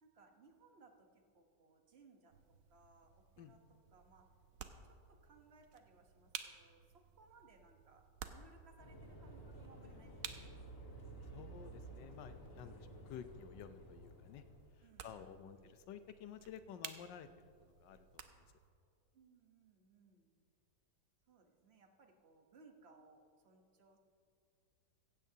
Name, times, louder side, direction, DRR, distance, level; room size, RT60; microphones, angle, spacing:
voice 1, 0.0-2.3 2.7-3.6 3.9-4.3 5.1-10.7 14.8-15.7 19.1-20.3 21.3-24.0, right 4 dB, 40° right, 4 dB, 1.2 m, -65 dB
sound 1, 2.3-18.7, right 8 dB, 60° right, 1.0 m, -55 dB
sound 2, 8.8-14.7, right 2 dB, 35° left, 1.6 m, -53 dB
voice 2, 11.3-14.4 15.0-17.3 17.6-18.5, left 9 dB, 80° left, 10 dB, 1.4 m, -52 dB
16.0 x 15.5 x 2.8 m, 2.3 s
omnidirectional pair, 1.9 m